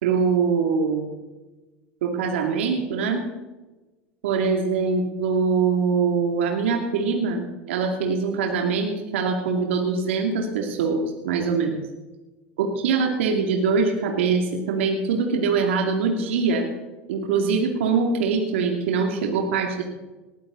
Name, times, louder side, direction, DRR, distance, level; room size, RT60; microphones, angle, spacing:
voice 1, 0.0-1.1 2.0-3.2 4.2-11.7 12.6-16.7 17.1-19.8, right 5 dB, 80° right, 2 dB, 2.7 m, -23 dB
19.0 x 15.0 x 4.1 m, 1.1 s
hypercardioid pair, 95°, 6 cm